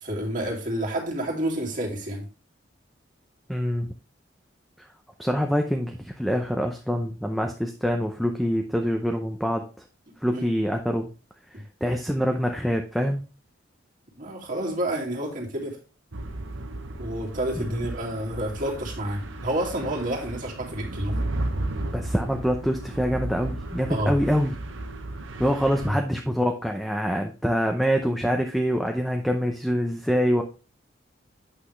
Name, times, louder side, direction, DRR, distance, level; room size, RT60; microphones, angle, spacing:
voice 1, 0.0-2.3 10.3-10.4 14.2-15.8 17.0-21.1 23.9-24.1 25.8-26.0, right 1 dB, 45° right, -2 dB, 2.3 m, -29 dB
voice 2, 3.5-3.9 4.8-4.9 5.2-9.7 10.2-11.1 11.5-13.2 17.6-17.8 21.9-24.5 25.4-30.4, equal, ahead, 2 dB, 0.6 m, -25 dB
sound 1, 16.1-25.9, right 2 dB, 90° right, 1.1 m, -34 dB
8.5 x 5.8 x 3.2 m, 0.33 s
head